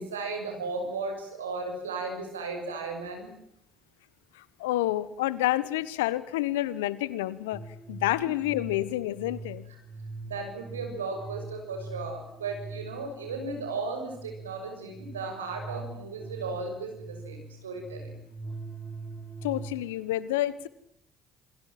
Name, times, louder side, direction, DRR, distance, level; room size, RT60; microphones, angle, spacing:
voice 1, 0.0-3.3 8.2-8.3 10.2-18.2, right 3 dB, 90° right, 4 dB, 6.5 m, -35 dB
voice 2, 4.3-7.6 7.9-9.7 19.4-20.7, left 15 dB, 80° left, 18 dB, 1.3 m, -29 dB
sound 1, 7.5-19.7, right 3 dB, 5° left, 5.6 m, -42 dB
28.0 x 22.5 x 7.5 m, 0.72 s
hypercardioid pair, 50°, 0 cm